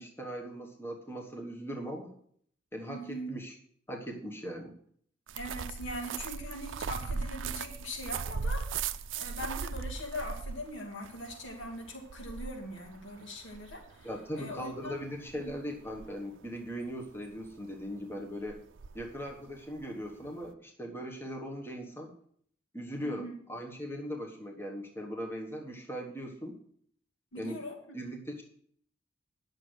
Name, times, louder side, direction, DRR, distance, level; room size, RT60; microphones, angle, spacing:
voice 1, 0.0-2.1 2.7-3.6 3.9-4.7 14.0-18.6 18.9-22.1 22.7-26.6 27.4-27.6 27.9-28.4, equal, 10° left, 1 dB, 1.2 m, -39 dB
voice 2, 2.9-3.3 5.3-8.6 9.2-14.9 15.3-15.5 23.0-23.3 27.3-27.8, equal, 85° left, 2 dB, 2.4 m, -41 dB
sound 1, 5.3-20.5, right 5 dB, 90° right, 0.5 m, -39 dB
11.0 x 6.6 x 6.3 m, 0.62 s
head